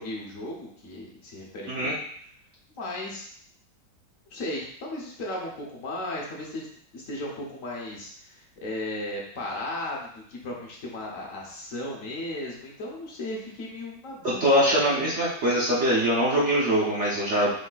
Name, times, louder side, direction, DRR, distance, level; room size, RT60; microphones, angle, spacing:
voice 1, 0.0-1.9 2.8-3.3 4.3-6.7 6.9-15.1, left 1 dB, 50° left, -2 dB, 1.2 m, -36 dB
voice 2, 14.2-17.5, equal, 50° right, -6 dB, 0.9 m, -23 dB
4.9 x 4.2 x 2.4 m, 0.63 s
omnidirectional pair, 1.9 m